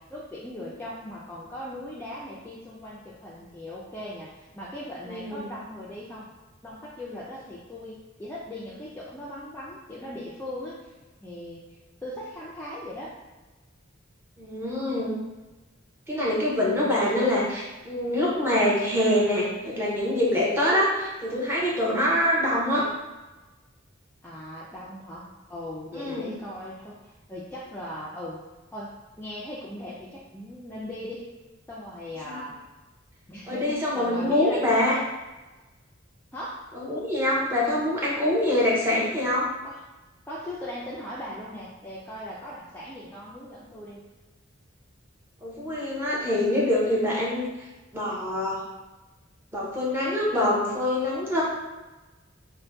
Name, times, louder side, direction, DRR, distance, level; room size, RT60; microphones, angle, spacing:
voice 1, 0.0-6.3 6.6-10.9 11.2-13.1 17.0-17.2 21.8-22.1 24.2-28.4 28.7-28.9 29.2-31.3 31.7-32.5 33.3-34.8 36.3-36.6 39.6-39.8 40.3-44.0, left 1 dB, 10° left, -7 dB, 0.3 m, -39 dB
voice 2, 5.1-5.5 14.4-15.2 16.1-22.8 25.9-26.3 32.3-32.4 33.5-35.0 36.7-39.5 45.4-47.5 47.9-48.6 49.5-51.4, left 1 dB, 10° right, -6 dB, 0.7 m, -25 dB
2.6 x 2.1 x 3.4 m, 1.2 s
head